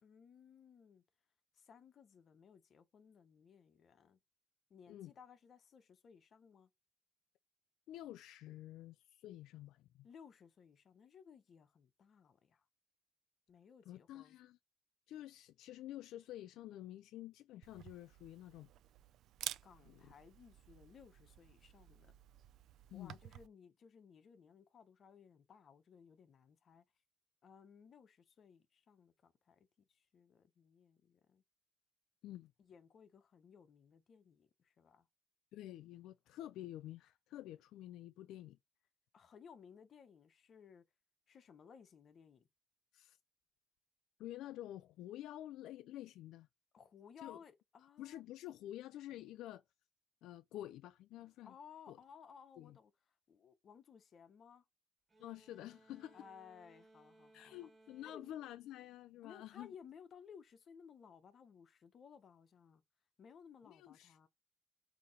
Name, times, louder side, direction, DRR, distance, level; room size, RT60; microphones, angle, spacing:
voice 1, 0.0-1.0 1.5-4.2 4.7-6.7 10.0-12.6 13.5-14.4 19.6-22.2 22.9-26.8 27.4-31.4 32.6-35.1 39.1-40.8 41.3-42.5 46.7-48.2 51.4-52.9 53.3-54.6 56.1-57.7 58.0-58.4 59.2-62.8 63.2-64.3, left 7 dB, 55° left, 1.0 m, -60 dB
voice 2, 7.9-10.1 13.9-14.6 15.1-18.7 19.8-20.1 22.9-23.2 32.2-32.5 35.5-38.6 42.9-43.2 44.2-46.5 47.2-47.4 48.0-49.6 50.2-51.5 51.9-52.0 52.6-52.8 55.2-56.2 57.3-59.7 63.6-64.3, left 13 dB, 90° left, 0.3 m, -49 dB
Camera, 17.6-23.5, right 12 dB, 80° right, 0.4 m, -51 dB
sound 1, 55.1-59.5, right 2 dB, 30° right, 1.7 m, -66 dB
8.2 x 2.9 x 4.2 m
cardioid pair, 90°, 0 cm